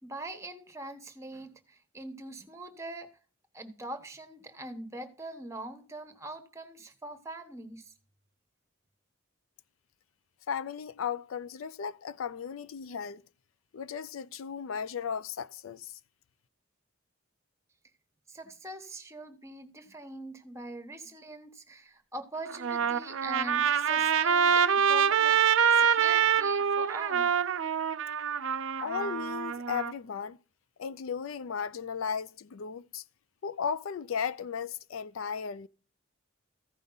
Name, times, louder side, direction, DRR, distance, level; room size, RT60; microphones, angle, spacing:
voice 1, 0.0-3.1 3.5-7.9 18.3-27.3, right 2 dB, 15° right, 1.1 m, -43 dB
voice 2, 10.5-13.2 13.7-16.0 28.8-30.4 30.8-33.0 33.4-35.7, left 7 dB, 80° left, 0.4 m, -35 dB
Trumpet, 22.5-29.9, right 7 dB, 70° right, 0.4 m, -26 dB
14.5 x 5.3 x 3.9 m
head